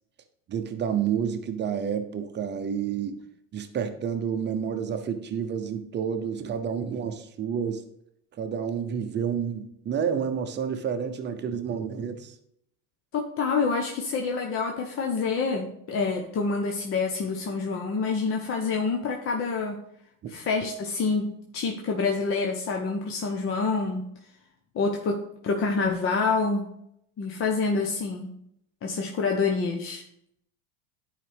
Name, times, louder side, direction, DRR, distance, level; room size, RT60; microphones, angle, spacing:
voice 1, 0.5-3.2 3.5-7.8 8.4-12.3, right 7 dB, 25° right, 7 dB, 0.8 m, -29 dB
voice 2, 13.1-19.8 20.3-24.1 24.7-26.7 27.2-28.3 28.8-30.0, left 4 dB, 30° left, 1 dB, 0.9 m, -27 dB
10.5 x 4.9 x 3.5 m, 0.74 s
supercardioid pair, 125°, 43 cm